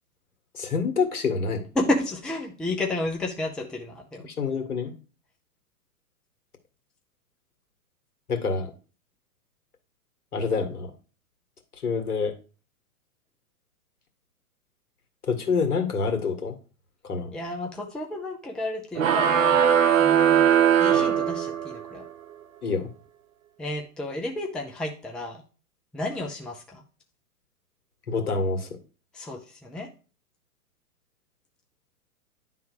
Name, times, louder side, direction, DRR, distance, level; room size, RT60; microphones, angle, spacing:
voice 1, 0.5-1.6 4.2-4.9 8.3-8.7 10.3-10.9 11.8-12.3 15.2-16.6 17.0-17.3 22.6-22.9 28.1-28.7, left 4 dB, 75° left, 6 dB, 1.9 m, -26 dB
voice 2, 1.8-4.2 17.3-19.7 20.0-20.5 20.8-22.0 23.6-25.4 25.9-26.8 29.1-29.9, left 1 dB, ahead, 1 dB, 0.5 m, -31 dB
sound 1, 19.0-21.9, right 8 dB, 60° right, 1.0 m, -20 dB
10.5 x 3.6 x 4.7 m, 0.36 s
hypercardioid pair, 115°, 45 cm